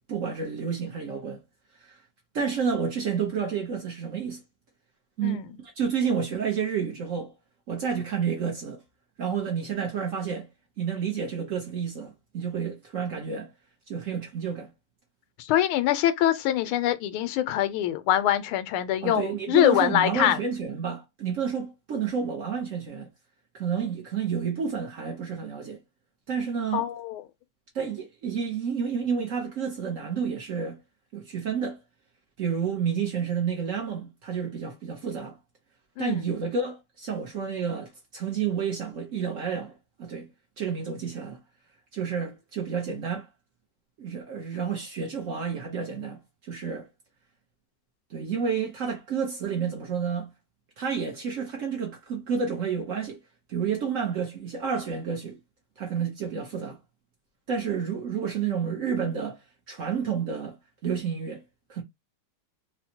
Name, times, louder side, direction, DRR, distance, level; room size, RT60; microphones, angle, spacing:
voice 1, 0.1-1.4 1.8-2.0 2.3-4.4 5.2-5.4 5.8-7.3 7.7-8.8 9.2-10.5 10.8-13.5 13.9-14.7 19.0-23.1 23.5-25.8 26.3-26.9 27.7-30.8 31.1-31.8 32.4-35.4 36.0-40.3 40.6-41.4 41.9-43.3 44.0-46.9 48.1-50.3 50.8-53.2 53.5-55.4 55.8-56.8 57.5-59.4 59.7-60.6 60.8-61.4 61.7-61.8, right 6 dB, 70° right, 0.7 m, -30 dB
voice 2, 15.4-20.4 26.7-27.2 36.0-36.2, left 12 dB, 85° left, 1.5 m, -24 dB
4.2 x 2.1 x 2.8 m
omnidirectional pair, 2.3 m